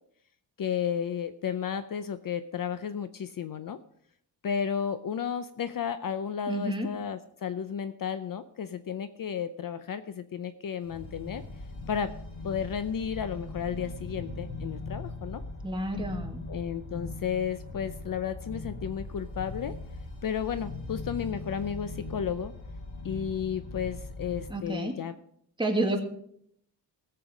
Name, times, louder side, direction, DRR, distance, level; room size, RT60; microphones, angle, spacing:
voice 1, 0.6-3.8 4.4-11.4 11.9-12.1 12.4-15.4 16.5-19.8 20.2-22.5 23.0-25.1, left 8 dB, 50° left, 12 dB, 0.7 m, -33 dB
voice 2, 6.5-6.9 15.6-16.4 24.5-25.0 25.6-26.0, right 1 dB, 10° right, 1 dB, 2.2 m, -30 dB
sound 1, 10.8-24.5, left 2 dB, 75° left, 4.7 m, -40 dB
19.0 x 7.8 x 5.0 m, 0.68 s
wide cardioid pair, 130°, 42 cm